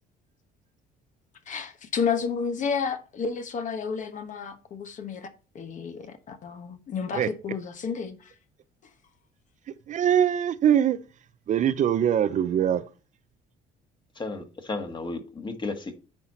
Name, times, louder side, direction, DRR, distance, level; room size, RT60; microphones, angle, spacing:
voice 1, 1.5-5.3 5.5-8.3, left 6 dB, 45° left, 1.3 m, -31 dB
voice 2, 9.9-11.0 11.5-12.8, right 9 dB, 45° right, 0.5 m, -22 dB
voice 3, 14.2-16.0, left 3 dB, 25° left, 1.7 m, -34 dB
9.6 x 4.3 x 4.2 m
cardioid pair, 110°, 17 cm